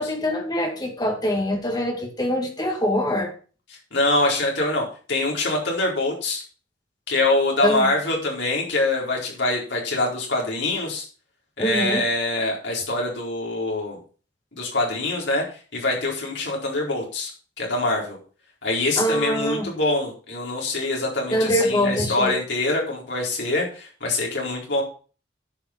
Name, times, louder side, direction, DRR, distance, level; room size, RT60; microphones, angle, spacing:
voice 1, 0.0-3.3 7.6-7.9 11.6-12.0 19.0-19.7 21.3-22.4, equal, 20° left, 2 dB, 2.2 m, -24 dB
voice 2, 3.9-6.4 7.1-11.0 11.6-14.0 14.5-15.4 15.7-17.3 17.6-18.2 18.6-24.8, left 2 dB, 75° left, -2 dB, 4.4 m, -24 dB
10.0 x 5.8 x 5.9 m, 0.39 s
head